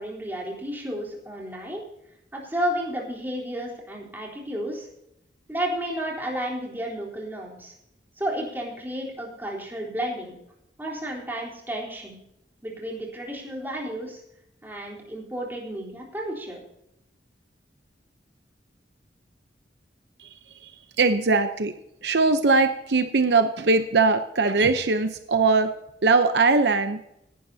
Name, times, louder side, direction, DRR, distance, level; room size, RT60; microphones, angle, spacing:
voice 1, 0.0-1.8 2.3-4.9 5.5-7.7 8.2-10.4 10.8-12.2 12.6-14.2 14.6-16.6, equal, 10° right, -3 dB, 3.8 m, -32 dB
voice 2, 21.0-21.7 22.0-25.7 26.0-27.0, right 3 dB, 65° right, 8 dB, 0.8 m, -21 dB
18.0 x 12.0 x 2.8 m, 0.81 s
head